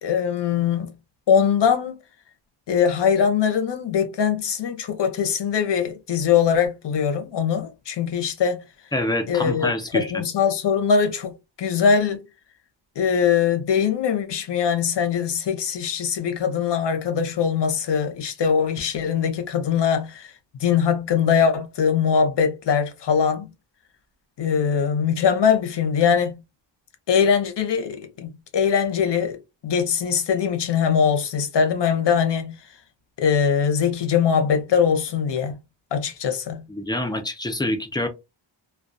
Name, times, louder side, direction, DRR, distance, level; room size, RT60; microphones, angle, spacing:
voice 1, 0.0-0.9 1.3-2.0 2.7-8.6 9.3-12.2 13.0-20.3 20.6-23.5 24.4-26.4 27.1-29.4 29.6-32.6 33.2-35.6 35.9-36.6, left 7 dB, 65° left, 0.7 m, -22 dB
voice 2, 8.9-10.2 36.7-38.1, left 1 dB, 10° left, 0.4 m, -26 dB
2.2 x 2.2 x 2.6 m
wide cardioid pair, 105°, 46 cm